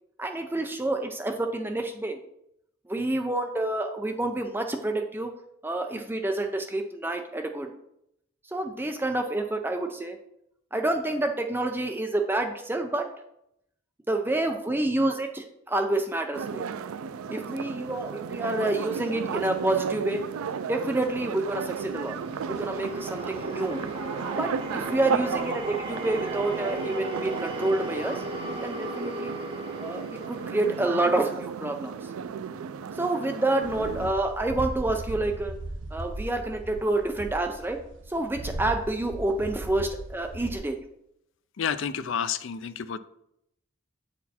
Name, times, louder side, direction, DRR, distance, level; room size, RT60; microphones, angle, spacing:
voice 1, 0.2-2.2 2.9-5.3 5.6-7.8 8.5-10.2 10.7-13.1 14.1-16.7 17.3-20.2 20.7-22.2 22.5-23.8 24.3-28.2 28.6-29.4 29.8-32.0 33.0-35.5 35.9-37.8 38.1-40.8, right 2 dB, 10° right, 4 dB, 0.5 m, -28 dB
sound 1, 16.3-34.1, right 6 dB, 90° right, 0.4 m, -34 dB
sound 2, 21.1-31.4, right 2 dB, 25° right, 0.8 m, -37 dB
sound 3, 33.6-40.6, right 2 dB, 60° right, 0.7 m, -37 dB
voice 2, 41.6-43.0, left 7 dB, 65° left, 13 dB, 0.4 m, -30 dB
8.2 x 4.3 x 4.2 m, 0.77 s
head